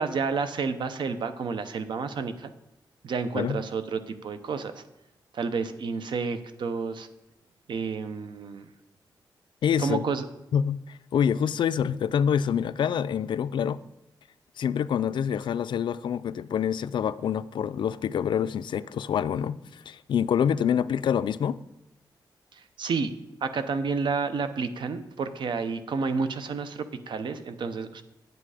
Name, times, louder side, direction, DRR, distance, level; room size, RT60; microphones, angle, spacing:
voice 1, 0.0-2.5 3.0-4.8 5.3-7.1 7.7-8.7 9.8-10.2 22.5-23.1 23.4-28.0, right 5 dB, 75° right, 0.7 m, -30 dB
voice 2, 9.6-10.1 10.5-13.8 14.6-21.6, left 8 dB, 75° left, 0.4 m, -26 dB
9.4 x 7.8 x 4.9 m
wide cardioid pair, 150°, 8 cm